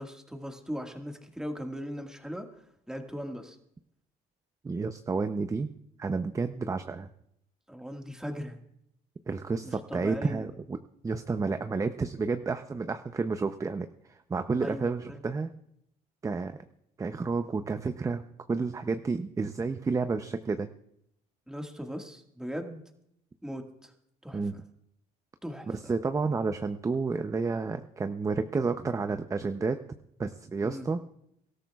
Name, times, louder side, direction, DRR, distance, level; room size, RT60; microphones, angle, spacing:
voice 1, 0.0-3.6 7.7-8.6 9.6-10.5 14.6-15.2 21.5-22.8 23.4-23.9 24.2-24.6 25.4-25.9 30.6-30.9, equal, 5° right, 4 dB, 1.7 m, -39 dB
voice 2, 4.6-5.7 6.0-7.1 9.3-10.8 11.0-13.9 14.3-15.5 16.2-16.6 17.0-18.2 18.5-20.7 24.3-24.5 25.7-29.8 30.2-31.0, right 4 dB, 20° right, 9 dB, 0.6 m, -30 dB
24.0 x 13.0 x 2.4 m, 0.74 s
cardioid pair, 110°, 17 cm